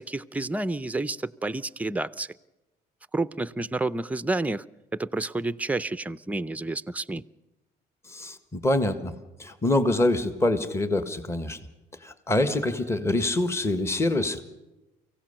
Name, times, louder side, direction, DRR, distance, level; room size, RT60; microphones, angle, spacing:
voice 1, 0.0-2.3 3.1-4.7 4.9-7.2, right 2 dB, 10° right, 0.6 m, -30 dB
voice 2, 8.1-11.6 12.0-14.4, left 1 dB, 15° left, 1.6 m, -25 dB
24.0 x 16.5 x 6.7 m
cardioid pair, 110°, 17 cm